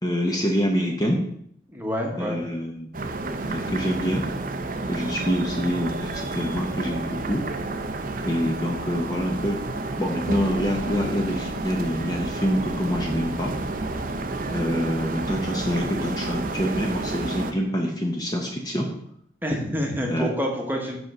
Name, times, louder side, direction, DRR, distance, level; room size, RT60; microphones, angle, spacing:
voice 1, 0.0-1.3 2.2-2.9 3.5-4.3 4.9-7.5 8.2-9.6 10.0-13.6 14.5-18.9 20.1-20.3, equal, 20° left, 1 dB, 0.7 m, -26 dB
voice 2, 1.7-2.4 19.4-21.0, equal, 10° right, 1 dB, 1.1 m, -27 dB
sound 1, 2.9-17.5, right 2 dB, 45° right, 0.6 m, -30 dB
5.3 x 5.0 x 6.1 m, 0.71 s
head